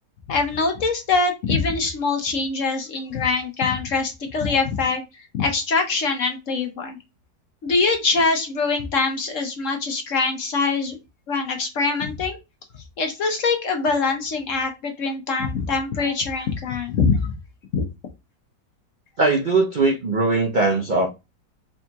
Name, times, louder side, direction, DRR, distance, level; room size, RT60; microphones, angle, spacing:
voice 1, 0.3-5.0 5.3-7.0 7.6-11.0 11.3-12.4 13.0-17.4 17.7-17.9, left 4 dB, 55° left, 1.0 m, -23 dB
voice 2, 19.2-21.1, right 3 dB, 55° right, 0.5 m, -20 dB
4.2 x 3.6 x 2.3 m
omnidirectional pair, 1.8 m